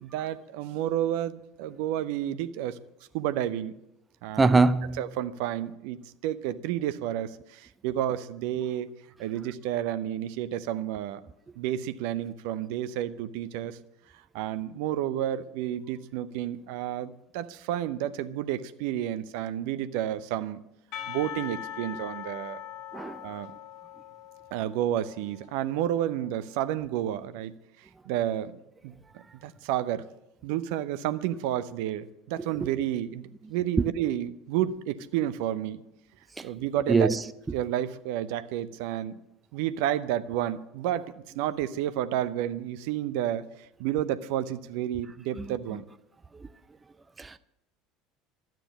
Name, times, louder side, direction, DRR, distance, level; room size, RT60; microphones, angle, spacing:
voice 1, 0.0-2.8 3.1-3.7 4.2-4.5 5.0-8.9 9.2-11.2 11.6-13.8 14.3-20.6 21.1-22.6 23.2-23.5 24.5-30.1 30.4-35.8 36.4-37.2 37.5-39.2 39.5-45.8, right 11 dB, 60° right, 0.7 m, -31 dB
voice 2, 4.4-5.0 22.9-23.2 36.9-37.2 47.2-47.4, right 3 dB, 20° right, 0.5 m, -22 dB
Percussion, 20.9-25.8, left 10 dB, 50° left, 1.2 m, -41 dB
13.0 x 9.1 x 8.9 m
figure-of-eight pair, 70°, 0 cm